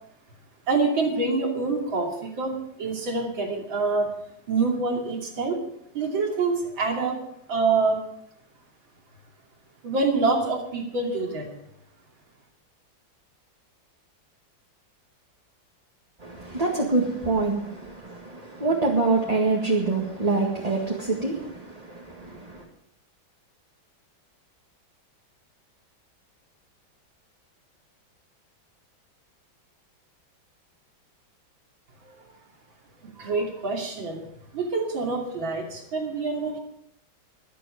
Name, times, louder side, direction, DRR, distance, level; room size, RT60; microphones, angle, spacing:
voice 1, 0.7-4.1 4.5-5.6 5.9-7.2 7.5-8.0 9.8-11.5 32.0-32.2 33.2-34.3 34.5-36.6, right 3 dB, 75° right, 3.5 m, -26 dB
voice 2, 16.2-22.6, right 3 dB, 20° right, 1.8 m, -26 dB
22.0 x 7.8 x 5.1 m
omnidirectional pair, 2.1 m